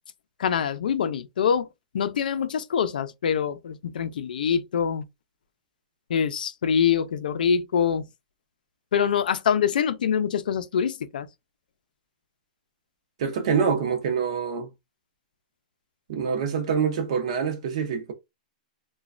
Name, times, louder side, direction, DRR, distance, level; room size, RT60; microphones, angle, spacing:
voice 1, 0.4-1.7 1.9-5.0 6.1-8.1 8.9-11.3, left 7 dB, 80° left, 0.4 m, -24 dB
voice 2, 13.2-14.7 16.1-18.1, right 6 dB, 45° right, 0.7 m, -25 dB
3.0 x 2.2 x 2.4 m
hypercardioid pair, 175°, 5 cm